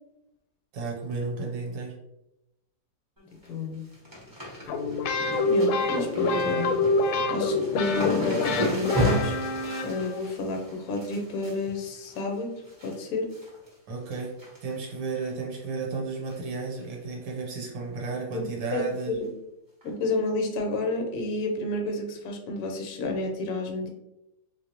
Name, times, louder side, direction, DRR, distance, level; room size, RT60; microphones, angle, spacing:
voice 1, 0.7-2.0 13.9-14.4 14.6-19.2, right 4 dB, 80° right, -2 dB, 1.6 m, -33 dB
sound 1, 3.2-3.5 3.7-13.0 13.3-13.7 14.0-14.9 15.2-15.3 16.3-16.5 16.8-16.9 17.3-17.4 19.0-19.1 19.8-19.9, equal, 15° right, 0.7 m, -34 dB
voice 2, 3.5-3.9 5.4-6.8 7.3-9.3 9.8-12.5 12.8-13.3 18.3-18.4 18.7-19.3 19.8-23.9, left 2 dB, 65° left, 3 dB, 1.1 m, -30 dB
sound 2, 4.7-10.3, left 2 dB, 80° left, 1.3 m, -26 dB
3.6 x 3.1 x 2.8 m, 0.87 s
omnidirectional pair, 2.1 m